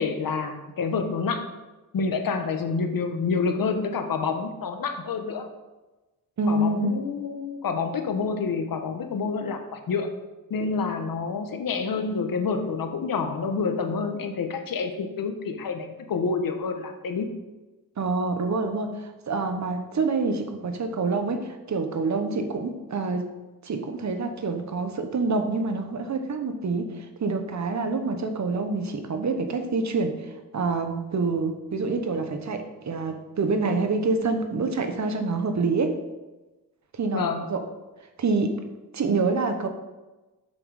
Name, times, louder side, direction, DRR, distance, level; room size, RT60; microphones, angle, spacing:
voice 1, 0.0-1.5 1.9-5.5 6.5-10.1 10.5-17.3 37.1-37.5, left 4 dB, 65° left, 6 dB, 1.0 m, -28 dB
voice 2, 6.4-7.0 18.0-23.3 23.6-36.0 36.9-37.6 38.2-38.6 38.9-39.7, right 3 dB, 50° right, 6 dB, 1.0 m, -27 dB
7.5 x 6.1 x 4.8 m, 1.1 s
wide cardioid pair, 125°, 36 cm